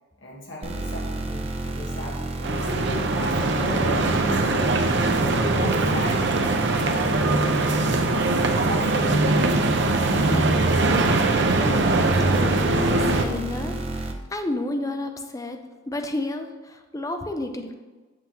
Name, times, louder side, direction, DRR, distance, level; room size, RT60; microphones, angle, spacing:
voice 1, 0.2-9.6 9.9-11.0, left 1 dB, 75° left, -3 dB, 1.3 m, -35 dB
sound 1, 0.6-14.1, right 2 dB, 30° right, 0.7 m, -32 dB
sound 2, 2.4-13.2, right 2 dB, 65° right, 0.7 m, -22 dB
voice 2, 11.6-15.6 15.9-17.7, left 2 dB, 15° left, 6 dB, 0.5 m, -31 dB
7.7 x 7.6 x 2.9 m, 1.3 s
head